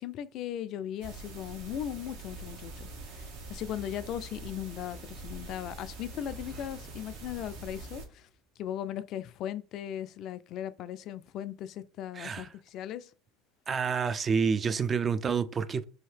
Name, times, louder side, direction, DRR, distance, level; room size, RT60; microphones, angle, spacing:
voice 1, 0.0-8.3 8.6-13.1, left 11 dB, 55° left, 0.3 m, -38 dB
sound 1, 1.0-8.0, right 3 dB, 70° right, 1.0 m, -44 dB
sound 2, 6.0-8.8, right 3 dB, 55° right, 1.5 m, -53 dB
voice 2, 12.1-12.5 13.7-15.8, right 6 dB, 30° right, 0.4 m, -28 dB
2.8 x 2.8 x 3.2 m
hypercardioid pair, 80°, 0 cm